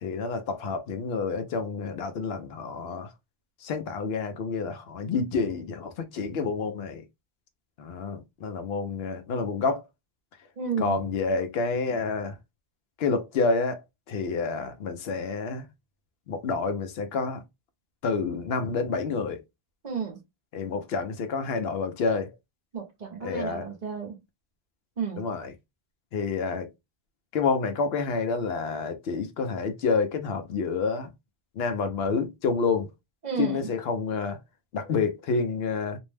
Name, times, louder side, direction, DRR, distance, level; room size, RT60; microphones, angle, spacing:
voice 1, 0.0-3.1 3.6-7.0 7.8-9.8 10.8-12.4 13.0-15.7 16.3-17.4 18.0-19.4 20.5-22.3 23.2-23.7 25.2-25.5 26.1-26.7 27.3-31.1 31.6-32.9 33.4-34.4 34.7-36.0, left 4 dB, 75° left, 0.8 m, -28 dB
voice 2, 10.6-11.0 19.8-20.2 22.7-24.2 25.0-25.3 33.2-33.7, right 6 dB, 50° right, 0.7 m, -32 dB
2.6 x 2.0 x 3.1 m
omnidirectional pair, 1.0 m